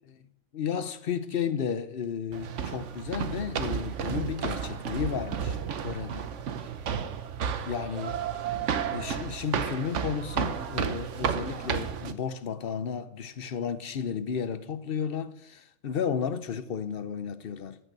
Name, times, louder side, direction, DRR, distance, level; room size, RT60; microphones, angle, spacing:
voice 1, 0.5-6.3 7.7-8.2 8.9-17.8, left 7 dB, 55° left, 0.9 m, -33 dB
sound 1, 2.3-12.1, right 7 dB, 70° right, 1.2 m, -32 dB
14.0 x 6.6 x 7.5 m
omnidirectional pair, 1.3 m